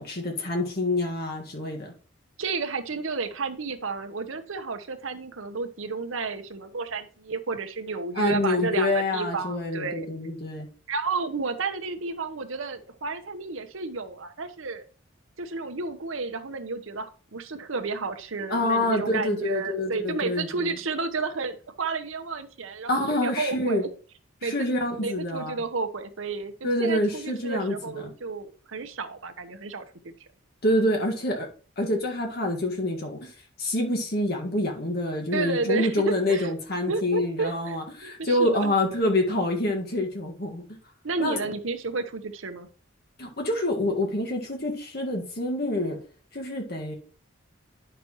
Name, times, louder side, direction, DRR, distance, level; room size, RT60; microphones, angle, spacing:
voice 1, 0.0-1.9 8.2-10.7 18.5-20.8 22.9-23.8 24.4-25.6 26.6-28.1 30.6-31.5 31.8-33.3 33.6-40.6 41.2-41.4 43.2-46.0 46.3-46.9, left 1 dB, 50° left, 1 dB, 1.8 m, -27 dB
voice 2, 2.4-10.1 10.9-14.8 15.4-23.9 24.4-24.7 25.0-29.8 30.2-30.3 35.3-36.5 36.9-38.7 41.0-42.7, right 4 dB, 70° right, 8 dB, 0.9 m, -32 dB
10.0 x 5.9 x 3.1 m, 0.39 s
head